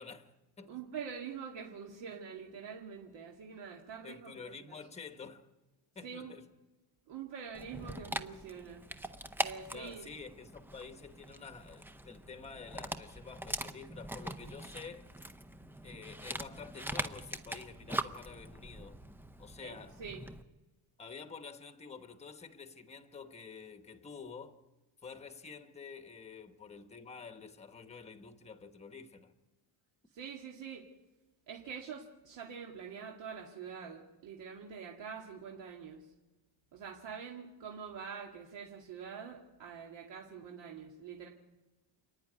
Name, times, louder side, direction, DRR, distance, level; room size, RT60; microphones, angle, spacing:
voice 1, 0.0-0.8 4.0-5.5 5.9-6.5 7.8-8.0 9.7-15.1 15.8-19.0 19.4-20.0 21.0-24.6 25.0-29.3, left 5 dB, 15° left, 1.1 m, -49 dB
voice 2, 0.7-4.8 6.0-6.3 7.1-8.8 9.4-10.1 19.6-20.2 30.1-30.8 31.5-36.1 36.7-41.3, right 6 dB, 60° right, 2.3 m, -45 dB
Dog, 7.5-20.4, right 1 dB, 5° right, 0.6 m, -42 dB
28.5 x 9.9 x 9.6 m
cardioid pair, 160°, 48 cm